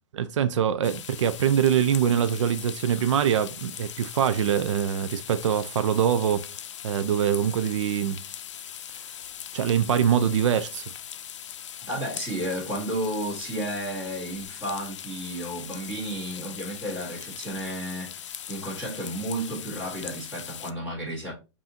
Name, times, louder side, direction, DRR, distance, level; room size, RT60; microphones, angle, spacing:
voice 1, 0.1-6.4 6.8-8.2 9.5-10.9, right 9 dB, 90° right, 0.4 m, -24 dB
sound 1, 0.8-20.7, left 10 dB, 80° left, 0.5 m, -40 dB
voice 2, 11.8-21.3, right 1 dB, 10° right, 1.8 m, -32 dB
5.5 x 2.7 x 2.8 m
hypercardioid pair, 175°, 15 cm